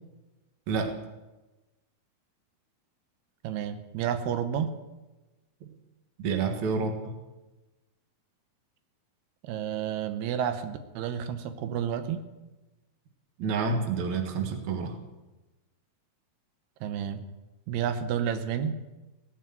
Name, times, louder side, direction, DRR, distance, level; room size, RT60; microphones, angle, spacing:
voice 1, 0.7-1.0 6.2-7.0 13.4-15.0, right 4 dB, 55° right, 5 dB, 2.6 m, -28 dB
voice 2, 3.4-4.7 9.4-12.2 16.8-17.2 17.7-18.7, right 8 dB, 85° right, 9 dB, 3.0 m, -30 dB
17.0 x 8.1 x 9.1 m, 1.1 s
omnidirectional pair, 4.5 m